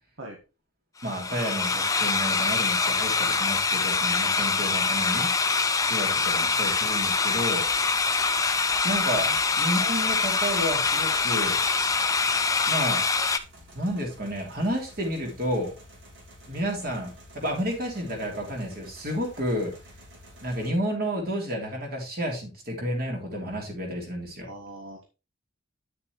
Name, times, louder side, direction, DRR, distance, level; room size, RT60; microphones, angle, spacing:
sound 1, 1.0-13.4, left 4 dB, 15° left, 0.6 m, -24 dB
voice 1, 1.0-5.3 5.8-7.7 8.8-9.3 9.6-11.6 12.7-13.0 13.7-15.7 16.5-19.7 20.4-24.5, equal, 50° right, 1 dB, 3.2 m, -31 dB
sound 2, 5.4-20.7, equal, 65° right, 3.2 m, -51 dB
voice 2, 24.4-25.0, right 1 dB, 90° right, 1 dB, 1.6 m, -41 dB
9.1 x 6.8 x 3.1 m, 0.28 s
head